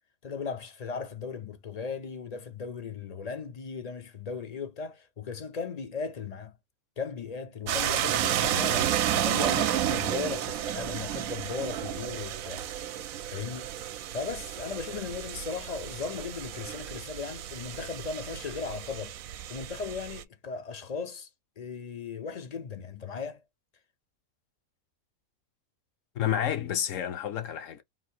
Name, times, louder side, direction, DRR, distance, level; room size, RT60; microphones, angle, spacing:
voice 1, 0.2-6.5 7.0-12.6 13.3-13.7 14.1-19.2 19.5-21.3 21.6-23.4, left 5 dB, 45° left, 0.5 m, -37 dB
sound 1, 7.7-20.2, right 11 dB, 80° right, 1.0 m, -31 dB
voice 2, 26.1-27.8, left 10 dB, 65° left, 1.1 m, -30 dB
3.8 x 2.6 x 4.3 m
omnidirectional pair, 1.5 m